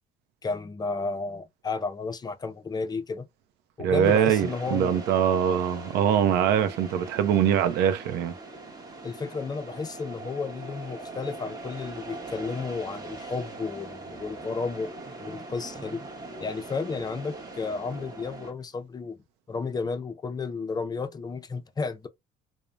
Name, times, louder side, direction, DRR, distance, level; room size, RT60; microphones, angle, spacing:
voice 1, 0.4-3.3 3.8-5.0 9.0-14.9 15.2-16.0 16.4-19.2 19.5-22.1, left 4 dB, 25° left, 0.4 m, -32 dB
voice 2, 3.8-8.3, right 9 dB, 90° right, 0.5 m, -23 dB
sound 1, 4.0-18.5, right 2 dB, 25° right, 0.9 m, -41 dB
3.1 x 2.0 x 2.4 m
cardioid pair, 110°, 17 cm